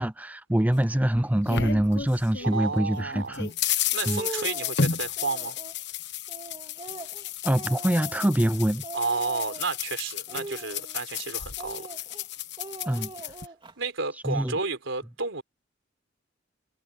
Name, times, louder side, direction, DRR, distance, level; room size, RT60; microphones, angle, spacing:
voice 1, 0.0-3.5 4.1-4.2 7.4-8.8 12.9-13.1 14.2-14.6, right 1 dB, 10° right, 0.5 m, -24 dB
sound 1, 0.7-2.6 2.9-13.5, left 7 dB, 60° left, 1.2 m, -33 dB
Speech, 2.4-2.7 3.5-3.6 3.9-4.8 5.2-5.8 6.3-8.6 8.8-9.8 10.3-11.2 11.6-12.2 12.6-13.7, right 2 dB, 25° right, 3.1 m, -41 dB
voice 2, 2.4-3.4 3.8-5.6 8.9-11.9 13.8-15.4, right 4 dB, 75° right, 4.1 m, -31 dB
head